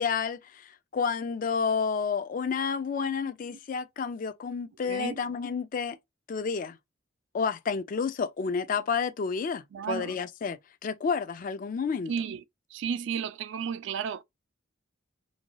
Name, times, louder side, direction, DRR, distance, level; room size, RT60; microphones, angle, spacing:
voice 1, 0.0-6.0 6.3-6.8 7.3-12.1, left 5 dB, 40° left, 0.3 m, -30 dB
voice 2, 4.8-5.2 9.7-10.2 12.1-12.4 12.7-14.2, right 7 dB, 60° right, 0.3 m, -33 dB
2.6 x 2.2 x 2.9 m
head